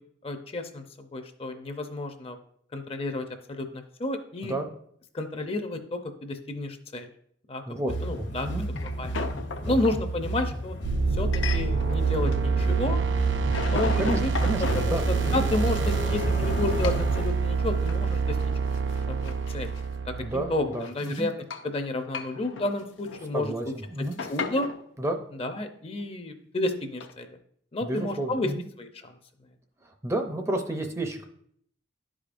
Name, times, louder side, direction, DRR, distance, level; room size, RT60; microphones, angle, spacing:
voice 1, 0.2-2.4 2.7-4.5 5.1-7.1 7.5-7.6 8.0-8.5 9.0-9.1 9.6-10.8 11.1-13.0 13.7-14.3 14.6-18.4 19.1-19.7 20.0-21.3 21.6-23.5 24.3-24.7 25.4-27.3 27.7-28.5 28.8-29.1, left 2 dB, 30° left, 7 dB, 0.5 m, -31 dB
voice 2, 7.7-8.7 9.6-9.8 14.0-15.4 20.2-21.3 23.3-23.6 23.9-24.2 25.0-25.2 27.8-28.6 30.0-31.3, right 1 dB, 15° right, 5 dB, 0.5 m, -31 dB
sound 1, 7.9-17.2, right 1 dB, 65° left, 1.0 m, -32 dB
sound 2, 8.4-10.0 11.3-12.0 12.3-13.0 13.2-16.5 16.8-17.1 17.6-18.1 18.4-18.5 18.7-19.8 20.2-21.7 22.0-23.3 23.6-24.8 25.5-25.7 27.0-27.1, left 4 dB, 85° left, 0.6 m, -36 dB
sound 3, 10.8-20.7, right 5 dB, 75° right, 0.5 m, -27 dB
11.5 x 5.0 x 2.5 m, 0.67 s
head